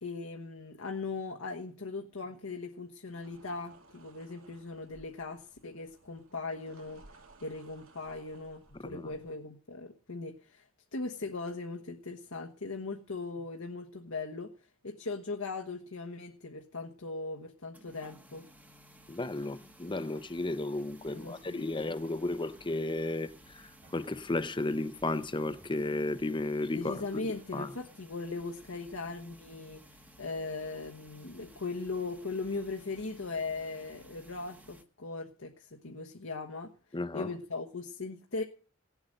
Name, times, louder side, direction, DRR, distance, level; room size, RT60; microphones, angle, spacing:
voice 1, 0.0-7.0 7.4-14.5 14.8-18.4 21.1-21.6 26.7-36.7 37.1-38.4, left 3 dB, 70° left, 1.3 m, -39 dB
sound 1, 3.1-9.3, right 2 dB, 70° right, 2.4 m, -59 dB
voice 2, 8.7-9.1 19.1-27.7 36.9-37.3, left 2 dB, 20° left, 0.8 m, -34 dB
sound 2, 17.7-34.8, equal, 10° right, 1.1 m, -57 dB
sound 3, 23.8-26.5 27.0-28.0 30.9-31.0 31.6-31.8, right 1 dB, 40° right, 2.1 m, -62 dB
18.0 x 8.1 x 6.5 m
head